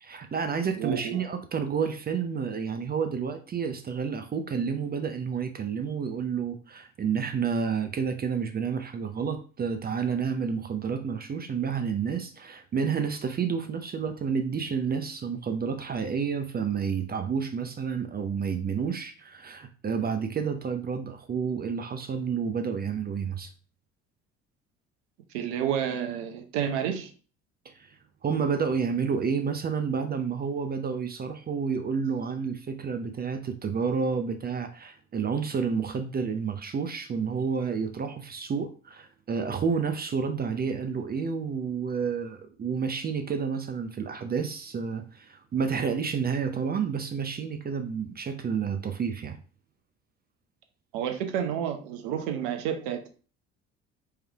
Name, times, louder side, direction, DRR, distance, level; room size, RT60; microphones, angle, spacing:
voice 1, 0.0-23.5 27.8-27.9 28.2-49.4, right 6 dB, 25° right, 0.6 m, -30 dB
voice 2, 0.8-1.2 25.3-27.1 50.9-53.1, right 9 dB, 65° right, 0.9 m, -30 dB
4.7 x 3.2 x 3.4 m
figure-of-eight pair, 55°, 35 cm